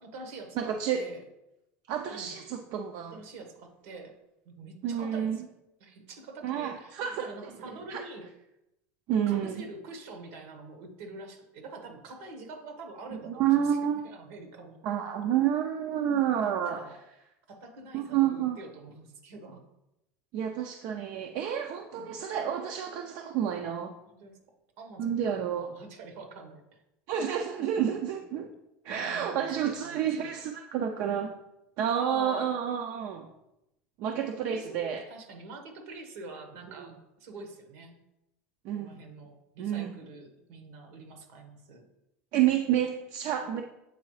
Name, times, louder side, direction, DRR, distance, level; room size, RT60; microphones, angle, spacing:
voice 1, 0.0-1.2 2.1-2.4 3.1-4.1 4.4-5.4 5.8-8.3 9.3-13.8 14.0-14.8 16.2-17.0 17.5-19.6 22.0-22.1 24.0-24.4 24.8-25.3 25.6-26.8 28.9-30.3 31.9-32.5 34.1-36.9 37.2-37.9 38.7-41.8, right 3 dB, 80° right, 4 dB, 1.4 m, -45 dB
voice 2, 0.6-1.0 1.9-3.1 4.8-5.4 6.4-7.3 7.9-8.0 9.1-9.6 13.3-14.0 14.8-16.8 17.9-18.6 20.3-23.9 25.0-25.7 27.1-28.5 28.8-31.3 31.8-33.3 34.0-35.0 36.8-36.9 38.6-39.0 39.6-39.9 42.3-43.6, right 9 dB, 60° right, 4 dB, 0.5 m, -29 dB
8.0 x 3.7 x 3.2 m, 0.88 s
supercardioid pair, 120°, 7 cm